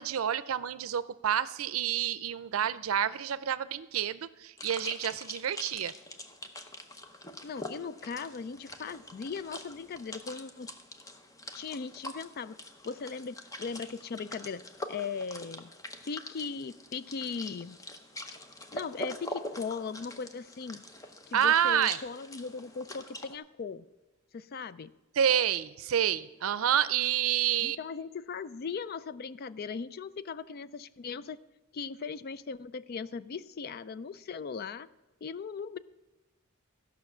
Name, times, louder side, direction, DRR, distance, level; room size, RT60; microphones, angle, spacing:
voice 1, 0.0-5.9 21.3-22.0 25.1-27.8, right 9 dB, 90° right, 16 dB, 0.5 m, -28 dB
sound 1, 4.6-23.4, left 1 dB, 15° left, 0.7 m, -44 dB
voice 2, 7.4-10.7 11.5-12.6 12.8-14.6 14.9-15.7 16.1-17.8 18.7-20.8 21.3-23.8 24.3-24.9 27.6-31.4 31.7-34.9 35.2-35.8, left 5 dB, 50° left, 16 dB, 0.4 m, -38 dB
14.0 x 5.8 x 7.2 m, 1.1 s
head